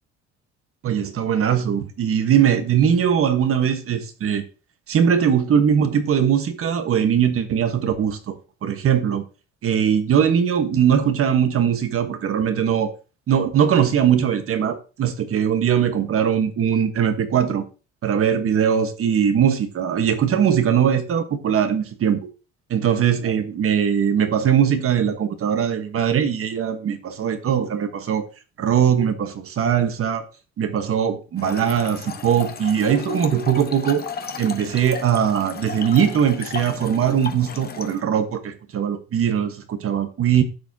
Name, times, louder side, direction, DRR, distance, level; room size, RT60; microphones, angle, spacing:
voice 1, 0.8-4.4 4.9-9.2 9.6-12.9 13.3-17.6 18.0-22.2 22.7-28.3 28.6-30.3 30.6-34.1 34.4-40.4, right 8 dB, 45° right, 1.3 m, -20 dB
Trickle dribble / Fill (with liquid), 31.4-38.0, left 5 dB, 30° left, 1.0 m, -34 dB
11.0 x 7.0 x 2.8 m
cardioid pair, 125°, 31 cm